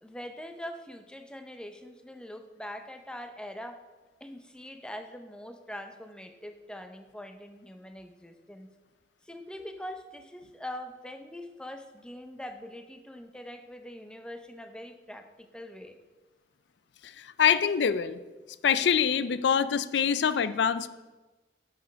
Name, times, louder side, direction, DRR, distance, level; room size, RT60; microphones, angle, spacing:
voice 1, 0.0-3.8 4.2-8.7 9.2-16.0, left 1 dB, 5° left, 7 dB, 0.5 m, -43 dB
voice 2, 17.0-18.2 18.6-20.9, left 7 dB, 90° left, 15 dB, 0.4 m, -25 dB
9.9 x 6.6 x 5.2 m, 1.2 s
head